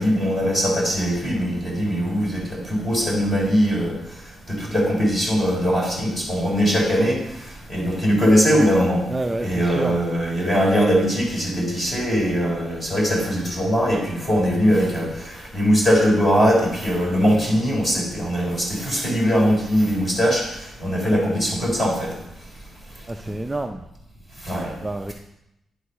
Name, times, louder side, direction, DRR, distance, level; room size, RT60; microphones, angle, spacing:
voice 1, 0.0-3.9 4.5-7.2 7.7-9.0 9.4-22.1 24.4-24.7, equal, 20° left, -2 dB, 3.9 m, -21 dB
voice 2, 9.1-10.0 23.1-23.8 24.5-25.1, right 2 dB, 15° right, 4 dB, 0.4 m, -28 dB
10.5 x 6.5 x 5.5 m, 0.85 s
cardioid pair, 135°, 0 cm